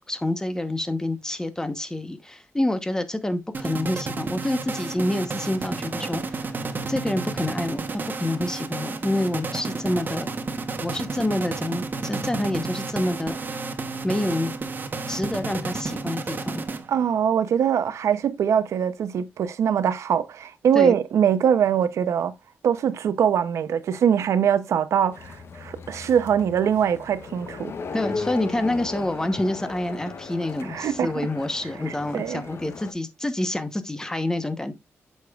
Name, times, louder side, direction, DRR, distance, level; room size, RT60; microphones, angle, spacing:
voice 1, 0.0-6.5 6.9-10.3 10.8-13.6 14.0-14.5 15.1-16.6 20.7-20.9 27.9-34.7, left 1 dB, 10° left, 0.9 m, -27 dB
sound 1, 3.5-17.2, right 4 dB, 40° right, 1.0 m, -31 dB
voice 2, 16.9-22.3 22.6-27.7 30.7-31.1 32.1-32.4, right 8 dB, 90° right, 0.6 m, -22 dB
sound 2, 25.1-32.9, left 4 dB, 60° left, 0.9 m, -37 dB
8.3 x 6.5 x 2.4 m
wide cardioid pair, 110°, 5 cm